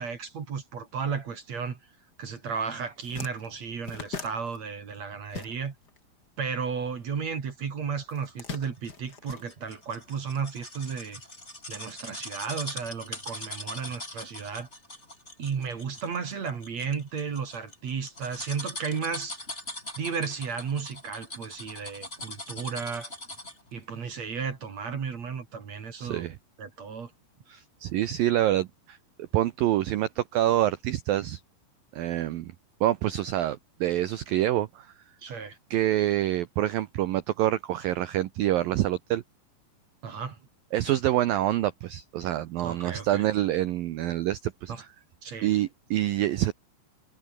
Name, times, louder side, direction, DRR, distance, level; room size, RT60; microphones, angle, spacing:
voice 1, 0.0-1.8 2.2-5.7 6.4-11.2 11.7-14.7 15.4-19.4 20.0-23.1 23.7-27.1 35.2-35.6 40.0-40.4 42.6-43.3 44.7-44.8 45.2-45.5, right 6 dB, 45° right, 3.2 m, -34 dB
sound 1, 2.4-2.5 2.8-6.0 6.2-7.4 8.1-10.1, left 5 dB, 30° left, 2.2 m, -41 dB
sound 2, 8.5-23.7 24.1-24.2, left 1 dB, 15° left, 7.7 m, -41 dB
voice 2, 26.0-26.4 27.5-31.4 31.9-32.5 32.8-34.9 35.7-39.2 40.7-44.9 45.4-46.5, right 13 dB, 80° right, 2.1 m, -26 dB
omnidirectional pair, 5.3 m